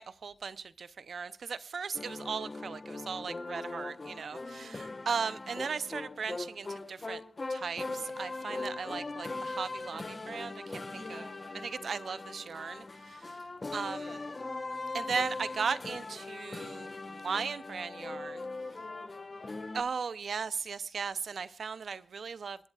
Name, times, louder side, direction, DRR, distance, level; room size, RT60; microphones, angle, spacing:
voice 1, 0.0-7.2 7.5-11.2 11.6-13.4 13.7-14.2 14.9-18.4 19.7-22.7, right 5 dB, 85° right, 0.6 m, -37 dB
sound 1, 1.9-19.8, left 3 dB, 40° left, 1.4 m, -40 dB
voice 2, 4.3-4.9 10.9-11.6 13.7-14.4 18.7-19.5, left 3 dB, 70° left, 7.8 m, -51 dB
27.0 x 10.5 x 2.4 m
wide cardioid pair, 120°, 0 cm